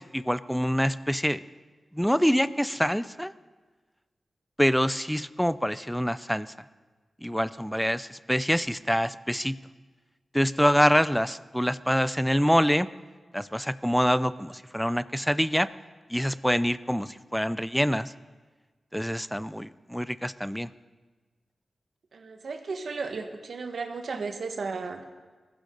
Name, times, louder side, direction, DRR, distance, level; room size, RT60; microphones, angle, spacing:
voice 1, 0.0-1.4 1.9-3.3 4.6-6.5 7.2-9.6 10.3-12.9 13.3-15.7 16.1-18.1 18.9-20.7, equal, ahead, 15 dB, 0.4 m, -25 dB
voice 2, 22.1-25.1, right 4 dB, 70° right, 5 dB, 1.5 m, -34 dB
20.5 x 15.5 x 3.9 m, 1.3 s
wide cardioid pair, 165°, 0 cm